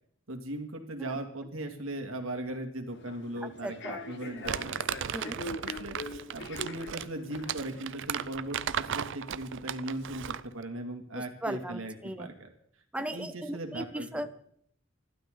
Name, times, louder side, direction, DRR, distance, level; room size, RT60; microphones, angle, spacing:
voice 1, 0.3-3.8 4.1-6.0 6.3-12.5 13.0-14.3, right 1 dB, 80° right, 4 dB, 2.6 m, -38 dB
Human voice / Subway metro underground, 2.9-8.4, left 2 dB, 60° left, 1.8 m, -43 dB
voice 2, 3.4-4.0 5.1-5.4 11.2-12.3 12.9-14.3, right 1 dB, 5° right, 9 dB, 0.6 m, -37 dB
Crumpling crinkling, 4.4-10.5, right 9 dB, 65° right, 0.6 m, -36 dB
27.5 x 12.0 x 4.0 m, 0.68 s
head